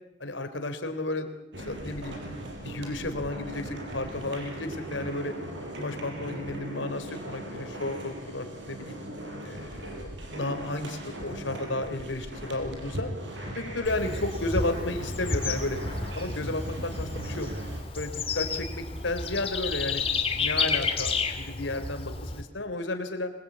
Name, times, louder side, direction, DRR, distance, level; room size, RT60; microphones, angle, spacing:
voice 1, 0.2-1.3 1.6-2.2 2.6-5.3 5.7-9.0 9.4-13.1 13.5-15.8 16.1-17.5 17.9-20.0 20.3-23.3, left 2 dB, 90° left, 7 dB, 3.4 m, -33 dB
sound 1, 1.5-17.8, right 1 dB, 75° right, 5.8 m, -38 dB
Bird / Insect, 13.8-22.4, left 4 dB, 30° left, 2.5 m, -31 dB
26.0 x 21.5 x 8.7 m, 0.92 s
head